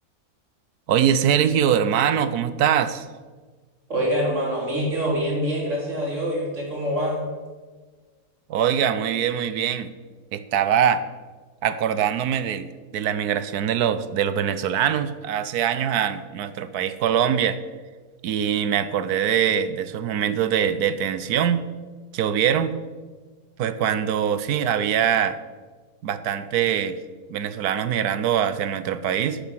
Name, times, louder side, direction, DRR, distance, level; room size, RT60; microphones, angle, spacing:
voice 1, 0.9-3.1 8.5-9.9 10.3-11.0 11.6-17.6 18.2-21.6 22.1-22.7 23.6-25.4 26.0-27.0 27.3-29.4, right 9 dB, 75° right, 13 dB, 1.2 m, -23 dB
voice 2, 3.9-7.3, equal, 50° right, -2 dB, 3.8 m, -25 dB
12.5 x 8.6 x 5.9 m, 1.4 s
omnidirectional pair, 1.6 m